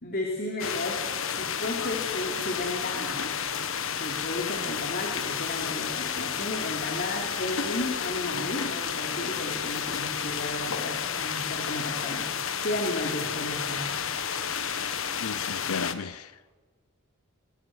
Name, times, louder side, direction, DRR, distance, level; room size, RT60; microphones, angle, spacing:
voice 1, 0.0-3.4 4.0-13.9, left 1 dB, 45° left, 3.7 m, -34 dB
sound 1, 0.6-15.9, left 7 dB, 65° left, 1.5 m, -31 dB
voice 2, 15.2-16.3, left 5 dB, 90° left, 0.7 m, -35 dB
28.5 x 21.0 x 8.0 m
head